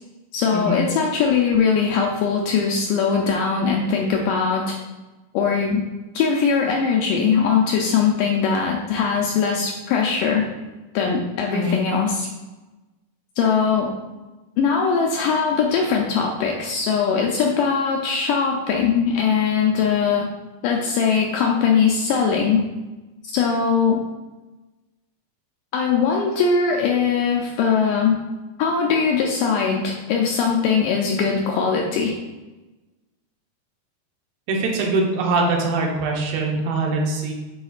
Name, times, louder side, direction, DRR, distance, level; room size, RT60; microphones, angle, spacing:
voice 1, 0.3-4.8 5.3-5.8 6.1-10.4 10.9-12.3 13.4-13.9 14.6-20.3 20.6-22.6 23.2-24.0 25.7-28.2 28.6-32.2, left 6 dB, 80° left, 0 dB, 1.9 m, -20 dB
voice 2, 34.5-37.3, right 2 dB, 80° right, 0 dB, 2.6 m, -22 dB
9.3 x 4.2 x 2.4 m, 1.1 s
omnidirectional pair, 4.2 m